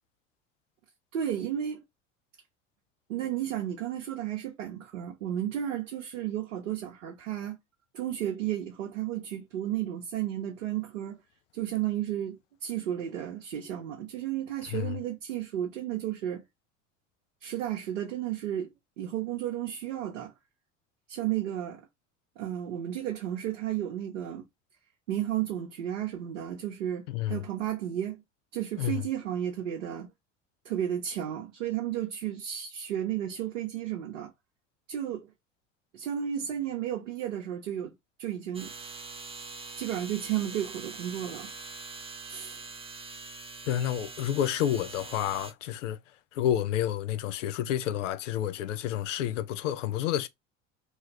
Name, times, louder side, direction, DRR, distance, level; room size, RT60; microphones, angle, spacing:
voice 1, 1.1-1.8 3.1-7.6 7.9-11.2 11.5-16.4 17.4-20.3 21.1-21.9 22.4-24.4 25.1-28.2 28.5-30.1 30.6-34.3 34.9-35.3 35.9-37.9 38.2-38.7 39.8-41.5 42.3-42.6, right 11 dB, 80° right, 0.7 m, -33 dB
voice 2, 27.1-27.4 28.8-29.0 43.7-46.0 46.3-50.3, left 11 dB, 80° left, 0.5 m, -29 dB
sound 1, 38.5-45.5, right 4 dB, 15° right, 0.6 m, -43 dB
3.1 x 2.4 x 2.9 m
hypercardioid pair, 70°, 37 cm